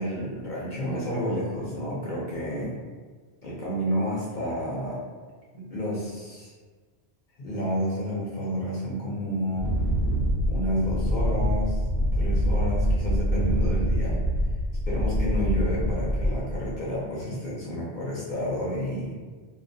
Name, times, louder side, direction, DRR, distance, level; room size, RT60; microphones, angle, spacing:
voice 1, 0.0-2.8 3.4-5.0 5.5-6.5 7.4-9.7 10.5-11.8 12.1-14.3 14.9-19.1, equal, 55° left, -6 dB, 0.6 m, -30 dB
Wind, 9.5-16.7, equal, 75° right, 0.8 m, -25 dB
2.3 x 2.1 x 2.5 m, 1.4 s
omnidirectional pair, 1.1 m